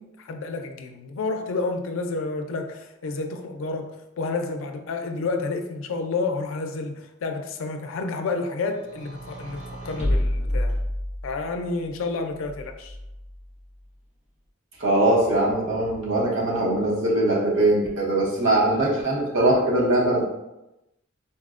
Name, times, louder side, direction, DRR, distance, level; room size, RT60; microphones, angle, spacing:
voice 1, 0.0-3.9 4.2-10.7 11.2-13.0, left 3 dB, 90° left, 5 dB, 0.4 m, -30 dB
sound 1, 8.8-11.5 12.4-13.4, left 1 dB, 35° right, 0.7 m, -28 dB
voice 2, 14.8-20.2, right 1 dB, 75° right, -4 dB, 0.9 m, -21 dB
4.0 x 2.1 x 2.4 m, 0.94 s
head